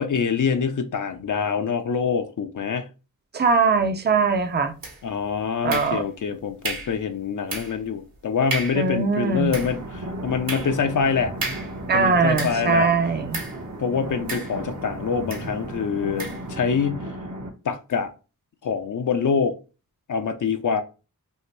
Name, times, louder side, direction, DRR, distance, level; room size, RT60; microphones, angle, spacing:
voice 1, 0.0-2.9 5.0-11.3 11.9-12.9 13.8-17.1 17.6-18.1 18.6-19.6 20.1-20.8, left 6 dB, 60° left, 0.5 m, -25 dB
voice 2, 3.3-4.7 5.6-6.0 8.7-9.5 11.9-13.4, right 4 dB, 30° right, 0.5 m, -21 dB
sound 1, 4.8-5.2 5.7-6.3 6.6-7.0 7.5-7.9 8.2-8.3 8.5-8.9 9.3-12.8 13.3-13.6 14.3-14.9 15.3-15.5 16.2-16.5, right 3 dB, 70° right, 1.1 m, -33 dB
sound 2, 9.5-17.5, right 1 dB, 55° right, 0.8 m, -35 dB
2.7 x 2.5 x 3.1 m
cardioid pair, 40°, 35 cm